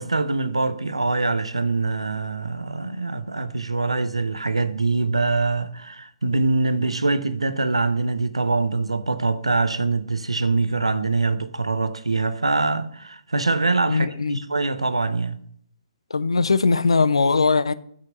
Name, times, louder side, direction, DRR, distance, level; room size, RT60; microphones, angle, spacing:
voice 1, 0.0-15.4, right 3 dB, 80° right, 0.6 m, -24 dB
voice 2, 13.9-14.4 16.1-17.7, left 4 dB, 70° left, 0.5 m, -20 dB
6.4 x 5.8 x 7.3 m
figure-of-eight pair, 125°, 3 cm